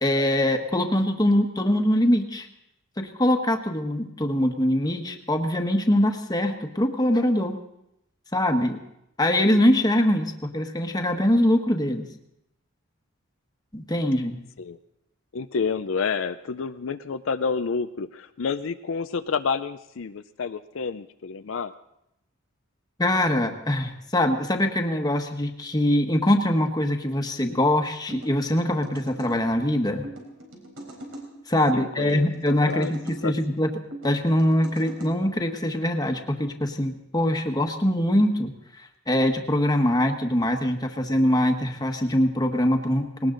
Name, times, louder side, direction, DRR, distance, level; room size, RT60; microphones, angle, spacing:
voice 1, 0.0-2.5 3.0-7.6 8.3-8.8 9.2-12.1 13.7-14.4 23.0-30.1 31.5-33.7 34.0-38.5 39.1-43.3, left 1 dB, 20° left, 5 dB, 1.3 m, -23 dB
voice 2, 15.3-21.7 31.7-32.9 33.2-33.3, left 5 dB, 65° left, 10 dB, 0.5 m, -29 dB
sound 1, 28.1-29.3 30.0-31.3 32.0-33.2 33.9-35.1, right 1 dB, 80° right, 4.2 m, -40 dB
19.5 x 18.5 x 3.9 m, 0.82 s
head